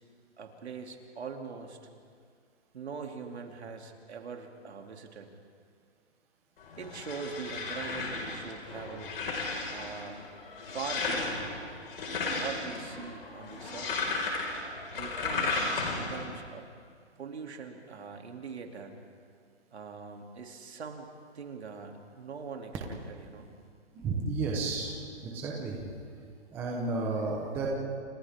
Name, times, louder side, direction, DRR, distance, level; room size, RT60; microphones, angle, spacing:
voice 1, 0.4-1.8 2.7-5.3 6.8-9.1 9.7-10.2 10.6-11.5 12.3-14.3 14.9-15.7 15.9-16.7 17.2-18.9 19.7-21.1 21.3-23.5, right 5 dB, 65° right, 3 dB, 2.9 m, -42 dB
sound 1, 6.6-16.3, left 3 dB, 55° left, 5.2 m, -34 dB
voice 2, 24.0-25.0 25.2-25.8 26.5-27.7, right 3 dB, 5° right, -2 dB, 1.0 m, -32 dB
29.5 x 29.0 x 3.7 m, 2.1 s
hypercardioid pair, 175°, 34 cm